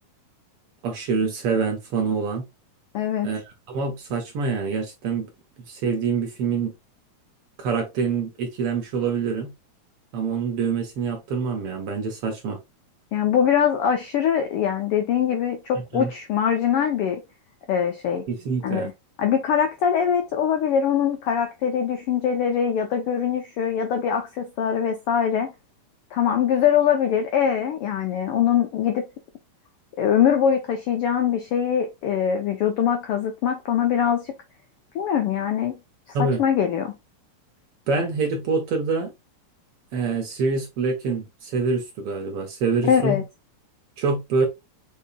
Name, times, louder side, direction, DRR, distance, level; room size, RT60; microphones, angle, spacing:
voice 1, 0.8-2.4 3.2-3.4 3.7-5.3 5.7-6.7 7.6-9.5 10.1-12.6 15.9-16.1 18.3-18.9 36.1-36.4 37.9-39.1 39.9-43.2 44.0-44.5, right 4 dB, 65° right, 1.7 m, -25 dB
voice 2, 2.9-3.3 13.1-17.2 17.7-18.2 18.6-18.9 19.2-25.5 26.1-29.0 30.0-34.3 34.9-35.8 36.2-36.9 42.9-43.2, left 8 dB, 80° left, 1.3 m, -22 dB
6.8 x 2.9 x 2.3 m
omnidirectional pair, 3.4 m